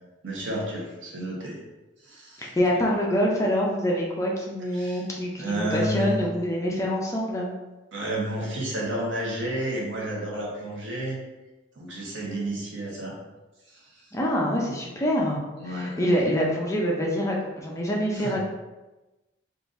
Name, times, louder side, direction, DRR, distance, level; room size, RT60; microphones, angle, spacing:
voice 1, 0.2-1.6 2.0-2.5 4.7-5.0 5.4-6.2 7.9-11.2 11.7-13.2 13.7-14.1 15.6-16.0 18.1-18.4, right 1 dB, 80° right, -3 dB, 0.9 m, -31 dB
voice 2, 2.4-7.5 14.1-15.4 15.6-18.4, equal, 15° left, -3 dB, 0.5 m, -25 dB
3.7 x 2.5 x 2.5 m, 1.1 s
head